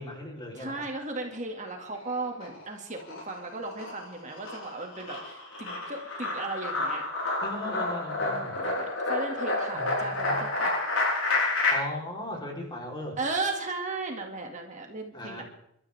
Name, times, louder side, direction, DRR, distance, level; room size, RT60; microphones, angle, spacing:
voice 1, 0.0-0.9 7.4-8.6 9.7-10.4 11.7-13.2 15.1-15.4, left 1 dB, 25° left, -1 dB, 3.6 m, -37 dB
voice 2, 0.5-7.1 8.1-10.7 13.2-15.4, right 3 dB, 40° right, 2 dB, 2.1 m, -36 dB
sound 1, 1.8-2.6 2.9-11.7, left 2 dB, 85° left, 7.8 m, -29 dB
30.0 x 12.5 x 3.5 m, 0.74 s
head